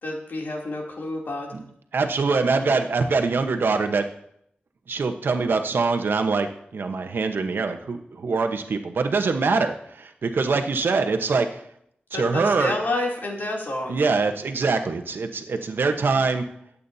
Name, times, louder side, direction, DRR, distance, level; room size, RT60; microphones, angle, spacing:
voice 1, 0.0-1.5 12.1-14.0, left 2 dB, 70° left, -2 dB, 3.0 m, -29 dB
voice 2, 1.9-4.0 4.9-11.6 12.1-12.7 13.9-16.4, right 4 dB, 75° right, 6 dB, 1.1 m, -24 dB
22.5 x 8.4 x 2.8 m, 0.72 s
wide cardioid pair, 110°, 4 cm